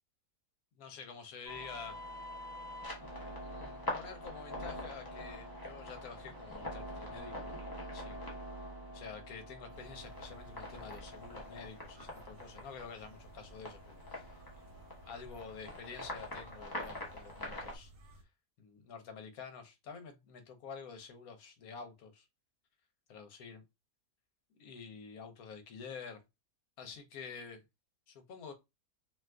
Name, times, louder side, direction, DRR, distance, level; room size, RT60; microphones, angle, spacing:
voice 1, 0.8-2.0 3.4-7.5 7.9-8.3 8.9-14.3 14.6-17.9 18.6-22.3 23.1-23.6 24.6-26.2 26.8-27.6 28.1-28.5, left 5 dB, 70° left, 1.1 m, -49 dB
sound 1, 1.5-17.8, left 1 dB, 25° left, 0.5 m, -44 dB
sound 2, 9.7-18.2, right 1 dB, 80° right, 1.2 m, -57 dB
2.8 x 2.4 x 3.3 m
omnidirectional pair, 1.6 m